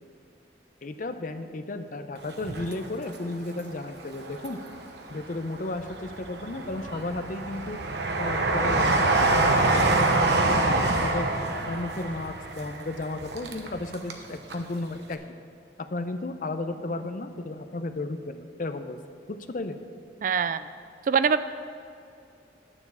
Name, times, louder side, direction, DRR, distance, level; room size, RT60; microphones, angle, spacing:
voice 1, 0.8-4.6 5.1-7.8 8.2-11.3 11.7-15.2 15.9-19.0 19.5-19.8, left 2 dB, 45° left, 9 dB, 0.6 m, -34 dB
Train, 2.3-3.5 4.0-5.0 5.5-14.2 14.5-14.6, right 2 dB, 70° right, 1.0 m, -26 dB
voice 2, 20.2-20.7 21.1-21.4, right 6 dB, 50° right, 13 dB, 0.3 m, -23 dB
9.6 x 7.0 x 6.8 m, 2.5 s
head